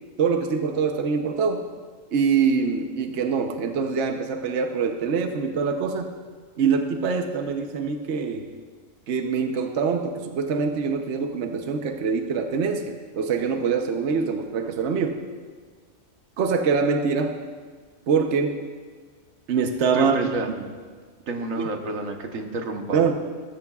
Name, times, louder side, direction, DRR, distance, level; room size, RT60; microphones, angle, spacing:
voice 1, 0.2-1.7 2.1-6.2 6.6-8.4 9.1-15.2 16.4-17.3 18.1-18.6 19.5-20.2 20.6-20.7 21.6-21.7 22.9-23.1, right 5 dB, 60° right, 5 dB, 1.1 m, -24 dB
voice 2, 19.9-20.5 21.3-23.1, right 3 dB, 85° right, 4 dB, 1.5 m, -29 dB
18.5 x 14.5 x 2.4 m, 1.5 s
omnidirectional pair, 1.4 m